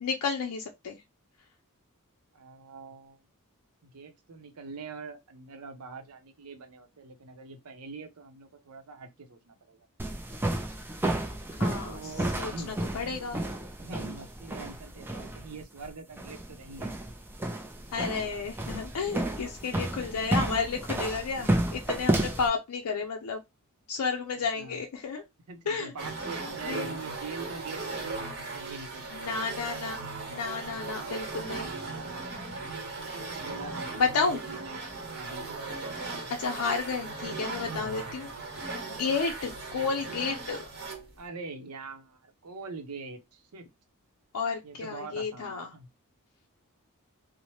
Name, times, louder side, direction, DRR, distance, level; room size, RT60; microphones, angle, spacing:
voice 1, 0.0-1.0 11.6-12.0 12.4-13.4 17.9-23.4 23.9-25.2 25.7-25.9 26.7-26.9 29.1-30.0 30.3-31.7 34.0-34.4 36.3-38.3 38.9-40.6 44.3-45.7, left 5 dB, 80° left, 0.4 m, -31 dB
voice 2, 2.3-3.2 3.8-9.9 11.9-13.1 13.8-16.9 24.3-24.8 25.5-29.5 31.5-32.2 33.0-34.8 35.1-35.9 37.7-38.1 41.2-43.7 44.6-45.9, right 4 dB, 85° right, 0.6 m, -44 dB
sound 1, 10.0-22.5, right 1 dB, 10° right, 0.4 m, -32 dB
sound 2, 26.0-41.1, right 3 dB, 50° right, 0.9 m, -37 dB
2.8 x 2.0 x 3.1 m
head